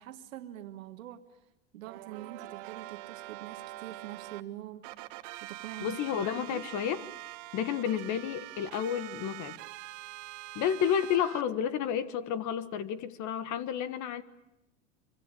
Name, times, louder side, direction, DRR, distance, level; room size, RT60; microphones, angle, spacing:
voice 1, 0.0-1.4 1.7-4.9 5.4-6.7, right 13 dB, 85° right, 8 dB, 1.7 m, -45 dB
sound 1, 1.8-4.4 4.8-11.4, right 19 dB, 65° right, 1.3 m, -44 dB
voice 2, 5.8-7.0 7.5-9.6 10.5-14.2, left 9 dB, 50° left, 13 dB, 1.6 m, -31 dB
24.5 x 24.5 x 8.4 m, 0.92 s
supercardioid pair, 105°, 39 cm